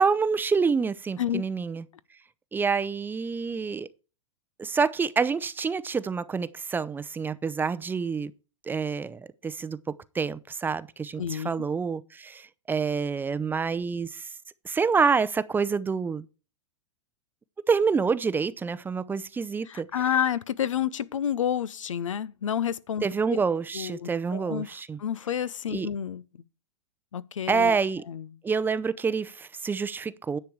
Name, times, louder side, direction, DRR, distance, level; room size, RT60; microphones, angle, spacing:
voice 1, 0.0-1.8 2.5-3.9 4.6-8.3 8.7-14.3 14.6-16.3 17.7-19.9 23.0-25.0 25.7-25.9 27.5-28.0 28.4-30.4, right 5 dB, 10° right, 0.5 m, -27 dB
voice 2, 11.2-11.5 19.7-23.0 23.7-24.7 25.0-26.2 27.1-27.7 28.1-28.3, left 9 dB, 90° left, 0.7 m, -29 dB
10.5 x 7.0 x 4.7 m
hypercardioid pair, 115°, 16 cm